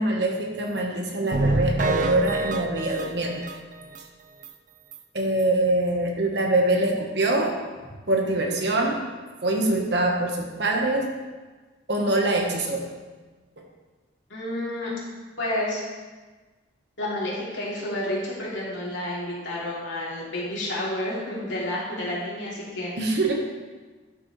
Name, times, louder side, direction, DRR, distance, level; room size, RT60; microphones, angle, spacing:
voice 1, 0.0-3.5 5.1-7.6 8.1-9.0 9.4-11.1 11.9-12.9 13.6-13.7 23.0-23.3, right 2 dB, 60° right, 2 dB, 1.2 m, -24 dB
sound 1, 1.3-4.0 4.4-4.5 4.9-5.0 5.4-5.5, right 2 dB, 40° right, 0.5 m, -27 dB
voice 2, 14.3-14.9 15.4-15.8 17.0-23.4, left 1 dB, 75° left, -6 dB, 2.9 m, -30 dB
12.0 x 6.4 x 3.2 m, 1.3 s
head